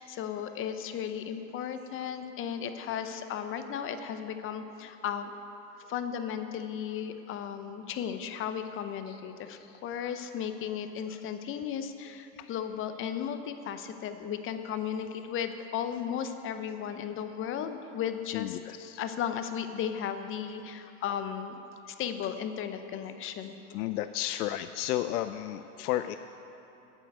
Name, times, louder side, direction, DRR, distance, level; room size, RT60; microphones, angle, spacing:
voice 1, 0.0-5.3 5.9-21.6 21.9-23.5, left 8 dB, 25° left, 9 dB, 0.7 m, -35 dB
voice 2, 18.3-19.0 23.7-26.2, left 13 dB, 70° left, 11 dB, 0.5 m, -32 dB
9.2 x 7.9 x 8.0 m, 2.9 s
hypercardioid pair, 110°, 49 cm